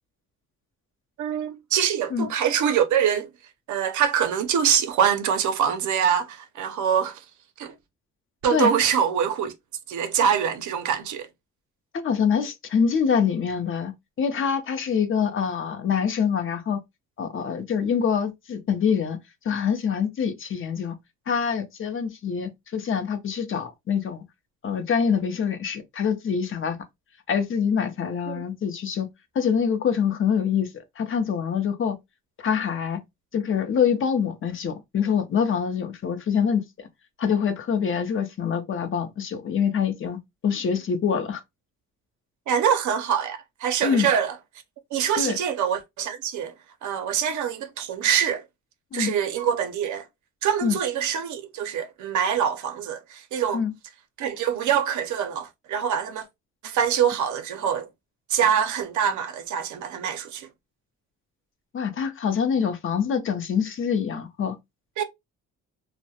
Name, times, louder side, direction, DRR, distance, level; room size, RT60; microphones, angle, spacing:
voice 1, 1.2-3.3 3.7-7.2 7.6-7.7 8.4-9.5 9.9-11.3 28.3-28.4 42.5-44.3 44.9-46.5 46.8-48.4 48.9-50.1 50.4-53.6 54.2-56.3 56.6-57.9 58.3-60.5 65.0-65.1, right 8 dB, 70° right, 0.6 m, -24 dB
voice 2, 11.9-13.9 14.2-16.8 17.2-19.2 19.4-20.9 21.3-24.2 24.6-26.8 27.3-29.1 29.3-30.7 31.0-32.0 32.4-33.0 33.3-36.9 37.2-40.2 40.4-41.4 43.8-44.1 45.2-45.4 48.9-49.1 50.6-50.8 53.5-53.7 61.7-64.6, left 7 dB, 45° left, 0.6 m, -25 dB
2.2 x 2.1 x 2.7 m
cardioid pair, 90°, 30 cm